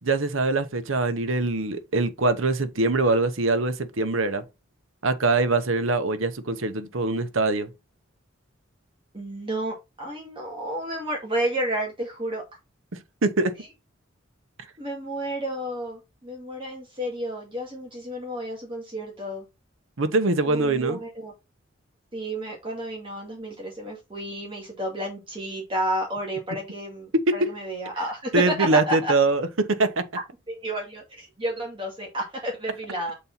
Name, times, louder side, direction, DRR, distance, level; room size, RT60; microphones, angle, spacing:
voice 1, 0.0-4.4 5.0-7.7 13.2-13.5 20.0-21.0 27.3-27.5 28.3-30.0, right 3 dB, 80° right, 1.0 m, -23 dB
voice 2, 9.1-12.4 14.8-19.4 20.5-21.3 22.1-29.1 30.5-33.1, right 1 dB, 25° right, 2.2 m, -31 dB
7.5 x 4.2 x 4.1 m
head